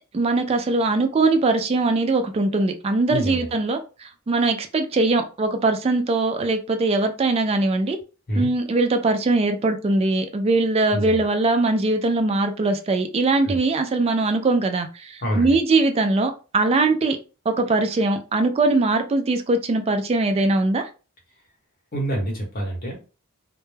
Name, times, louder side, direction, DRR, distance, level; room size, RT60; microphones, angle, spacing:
voice 1, 0.1-8.0 8.4-17.2 17.5-20.9, right 3 dB, 30° right, 0.3 m, -21 dB
voice 2, 3.1-3.5 8.3-8.5 10.9-11.3 13.4-13.6 15.2-15.6 21.9-22.9, right 1 dB, 45° left, 1.0 m, -26 dB
2.2 x 2.1 x 3.1 m
head